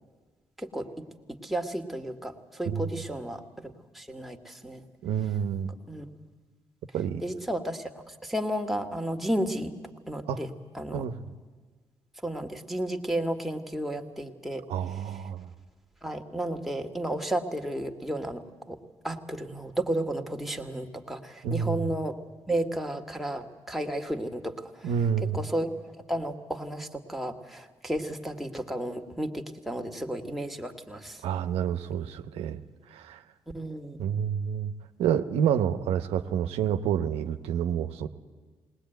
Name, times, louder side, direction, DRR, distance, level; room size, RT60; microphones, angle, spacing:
voice 1, 0.6-4.8 5.9-6.1 7.2-9.7 10.1-11.1 12.2-14.6 16.0-18.8 19.0-22.2 22.5-24.9 25.3-25.7 26.1-31.2 33.5-34.0, right 1 dB, ahead, 3 dB, 2.0 m, -33 dB
voice 2, 2.6-3.0 5.0-5.7 6.9-7.2 10.3-10.4 10.9-11.2 14.7-15.5 21.4-21.9 24.8-25.4 31.2-32.6 32.9-33.2 34.0-34.7 35.0-38.1, right 8 dB, 85° right, 9 dB, 0.8 m, -28 dB
20.0 x 19.5 x 9.2 m, 1.4 s
supercardioid pair, 60°, 10 cm